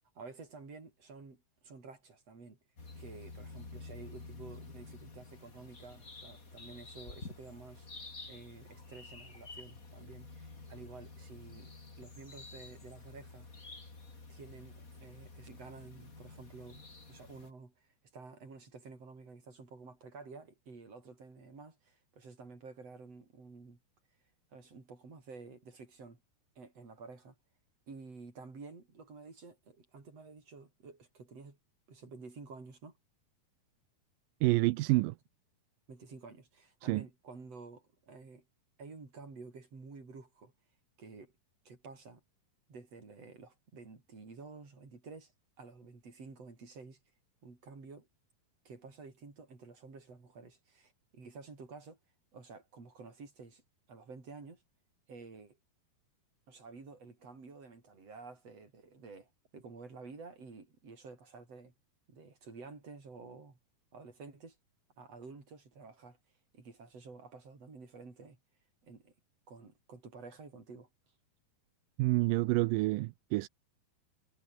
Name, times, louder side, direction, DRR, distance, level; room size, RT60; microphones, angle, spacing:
voice 1, 0.1-2.6 3.0-7.9 8.3-11.7 12.0-13.5 14.3-23.8 24.5-26.2 26.6-27.4 27.9-31.6 31.9-33.0 35.9-38.4 38.8-40.5 41.0-41.3 41.6-42.2 42.7-45.3 45.6-47.0 47.4-48.1 48.6-52.0 52.3-53.6 53.9-54.6 55.1-55.6 56.5-61.7 62.1-63.6 63.9-64.6 65.0-66.2 66.5-68.4 68.8-69.1 69.5-70.9, right 4 dB, 40° right, 6.5 m, -51 dB
sound 1, 2.8-17.5, left 3 dB, 25° left, 3.5 m, -50 dB
voice 2, 34.4-35.2 36.8-37.0 72.0-73.5, right 20 dB, 80° right, 2.1 m, -28 dB
omnidirectional pair, 4.3 m